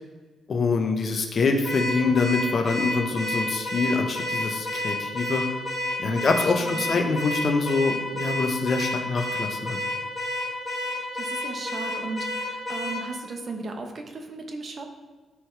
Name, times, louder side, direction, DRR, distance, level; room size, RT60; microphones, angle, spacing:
voice 1, 0.5-5.4 6.0-9.8, left 4 dB, 45° left, 4 dB, 0.9 m, -25 dB
Car / Alarm, 1.6-13.1, left 1 dB, 15° left, 2.2 m, -30 dB
voice 2, 6.0-7.0 10.8-14.9, right 3 dB, 40° right, 4 dB, 1.1 m, -36 dB
13.0 x 4.8 x 3.3 m, 1.4 s
cardioid pair, 125°, 0 cm